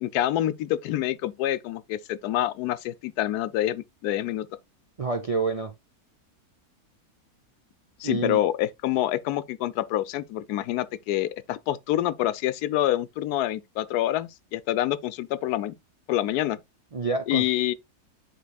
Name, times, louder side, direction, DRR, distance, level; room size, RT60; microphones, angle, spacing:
voice 1, 0.0-4.5 8.0-15.7 16.1-16.6 17.3-17.7, left 13 dB, 85° left, 1.1 m, -27 dB
voice 2, 5.0-5.7 8.0-8.4 16.9-17.4, right 4 dB, 65° right, 0.3 m, -28 dB
11.5 x 3.9 x 2.3 m
omnidirectional pair, 1.6 m